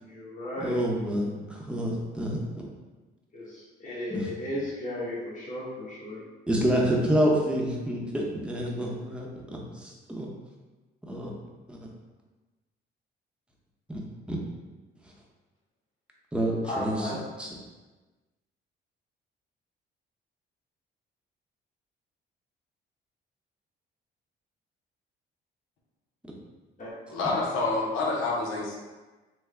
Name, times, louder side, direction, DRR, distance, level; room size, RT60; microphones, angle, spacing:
voice 1, 0.0-0.8 3.3-6.3 16.6-17.2 26.8-27.1, left 1 dB, 40° left, -6 dB, 1.3 m, -35 dB
voice 2, 0.6-2.6 4.1-4.3 6.5-9.3 9.8-10.3 11.1-11.3 11.7-11.8 13.9-14.0 14.3-14.4 16.3-17.1 17.4-17.5, equal, 5° right, -2 dB, 0.7 m, -28 dB
voice 3, 27.1-28.8, left 3 dB, 85° left, -2 dB, 0.7 m, -28 dB
3.5 x 2.0 x 3.2 m, 1.2 s
cardioid pair, 90°, 20 cm